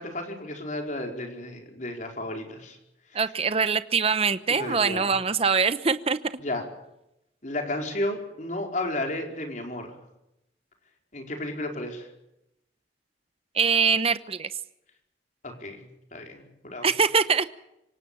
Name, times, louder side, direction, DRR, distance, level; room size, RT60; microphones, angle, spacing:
voice 1, 0.0-2.8 3.1-3.2 4.5-5.1 6.4-6.6 7.4-9.9 11.1-12.1 15.4-16.9, left 1 dB, 45° left, 3 dB, 4.7 m, -33 dB
voice 2, 3.1-6.2 13.5-14.5 16.8-17.5, right 5 dB, 35° right, 13 dB, 0.9 m, -23 dB
26.0 x 17.5 x 7.0 m, 0.86 s
head